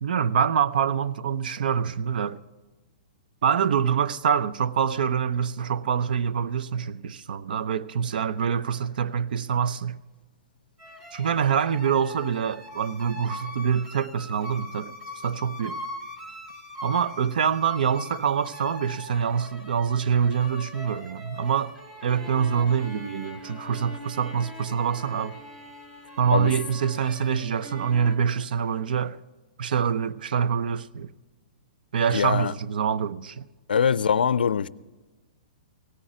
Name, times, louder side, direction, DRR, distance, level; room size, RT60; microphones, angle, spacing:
voice 1, 0.0-2.4 3.4-10.0 11.1-14.9 15.2-15.8 16.8-21.7 22.0-25.4 26.2-29.2 29.6-31.1 31.9-33.4, right 7 dB, 70° right, 0.6 m, -25 dB
sound 1, 10.8-28.2, left 1 dB, 35° right, 4.5 m, -41 dB
voice 2, 32.1-32.5 33.7-34.7, left 7 dB, 85° left, 0.4 m, -22 dB
17.0 x 10.0 x 4.9 m
hypercardioid pair, 130°, 5 cm